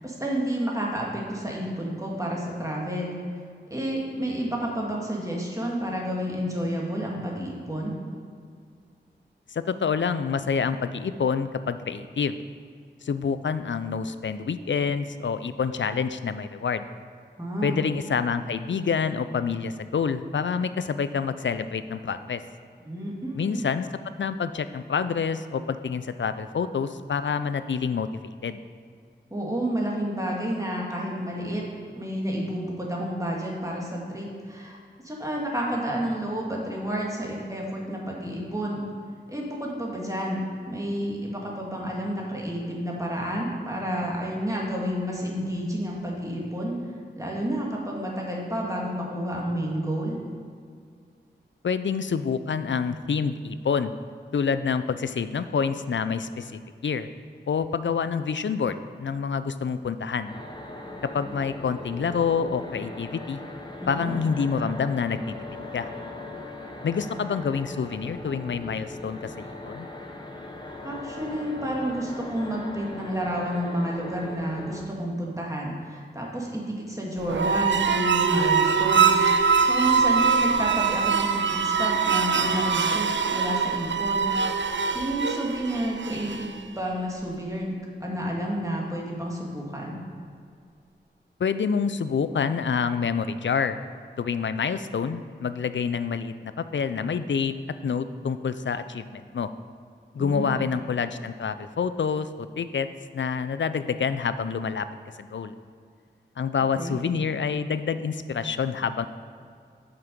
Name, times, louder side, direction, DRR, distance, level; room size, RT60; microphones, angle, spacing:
voice 1, 0.0-3.2 3.7-8.0 17.4-17.8 22.8-23.6 29.3-31.6 32.0-34.8 35.0-38.8 39.3-46.7 47.1-50.2 61.2-61.3 63.8-64.1 70.8-84.3 84.9-90.0 100.2-100.7 106.7-107.0, equal, 15° right, -3 dB, 1.9 m, -30 dB
voice 2, 9.5-12.4 13.0-16.9 17.6-22.4 23.3-23.9 24.2-28.1 28.4-28.6 51.6-53.9 54.3-57.1 57.5-60.3 61.0-63.4 63.9-65.9 66.8-69.9 91.4-93.8 94.2-97.5 97.8-99.5 100.1-102.9 103.1-104.9 105.2-105.5 106.4-109.1, left 6 dB, 80° left, 12 dB, 0.4 m, -27 dB
sound 1, 60.3-74.8, left 2 dB, 25° left, 0.9 m, -39 dB
sound 2, 77.2-86.6, right 5 dB, 80° right, 0.4 m, -23 dB
7.7 x 5.9 x 5.2 m, 2.2 s
wide cardioid pair, 50°, 19 cm